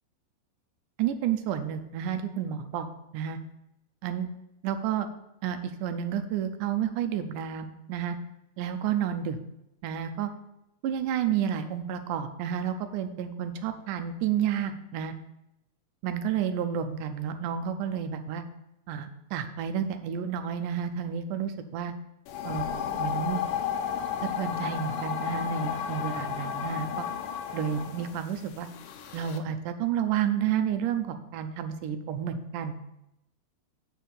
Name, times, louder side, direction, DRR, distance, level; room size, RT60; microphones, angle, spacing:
voice 1, 1.0-3.4 4.0-4.3 4.6-5.1 5.4-8.2 8.6-9.4 9.8-10.3 10.8-15.1 16.0-18.4 18.9-21.9 22.4-22.7 22.9-23.4 24.2-27.1 27.5-28.7 29.1-32.8, right 9 dB, 80° right, 8 dB, 2.1 m, -30 dB
sound 1, 22.3-29.4, left 8 dB, 80° left, 2.4 m, -33 dB
7.9 x 4.7 x 6.7 m, 0.86 s
omnidirectional pair, 3.9 m